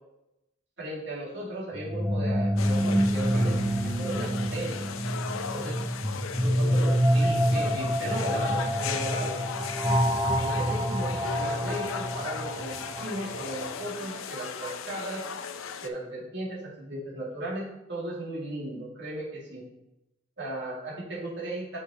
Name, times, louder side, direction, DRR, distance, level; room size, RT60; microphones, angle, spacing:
voice 1, 0.8-3.6 3.8-5.0 5.5-5.8 6.4-9.4 10.2-15.3 15.8-19.6 20.4-21.8, right 1 dB, 60° right, -5 dB, 2.4 m, -36 dB
sound 1, 1.7-13.6, equal, 15° right, 0.7 m, -27 dB
sound 2, 2.6-15.9, left 6 dB, 90° left, 0.5 m, -37 dB
6.8 x 5.0 x 4.2 m, 0.90 s
head